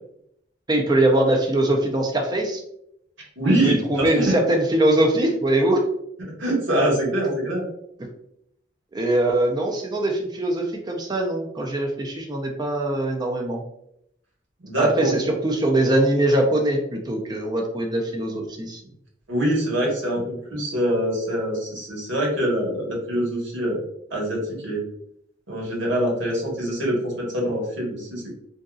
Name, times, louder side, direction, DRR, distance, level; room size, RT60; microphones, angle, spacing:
voice 1, 0.7-2.6 3.5-5.8 8.0-8.1 8.9-13.6 14.8-18.8, right 1 dB, 20° right, 2 dB, 0.4 m, -22 dB
voice 2, 3.4-4.3 6.2-7.6 14.6-15.1 19.3-23.8 24.1-24.8 25.5-28.4, right 1 dB, 80° right, -3 dB, 1.3 m, -24 dB
3.7 x 2.6 x 2.3 m, 0.73 s
head